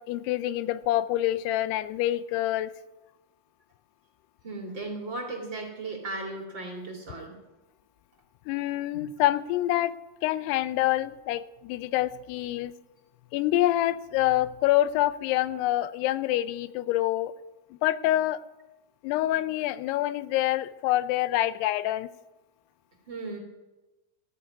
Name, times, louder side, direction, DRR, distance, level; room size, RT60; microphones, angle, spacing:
voice 1, 0.0-2.7 8.5-9.9 10.2-12.7 13.3-17.3 17.8-18.4 19.0-22.1, left 14 dB, 85° left, 16 dB, 2.7 m, -26 dB
voice 2, 4.4-7.3 8.9-9.1 23.1-23.4, right 2 dB, 30° right, 1 dB, 2.8 m, -36 dB
14.5 x 9.3 x 9.5 m, 1.1 s
omnidirectional pair, 4.6 m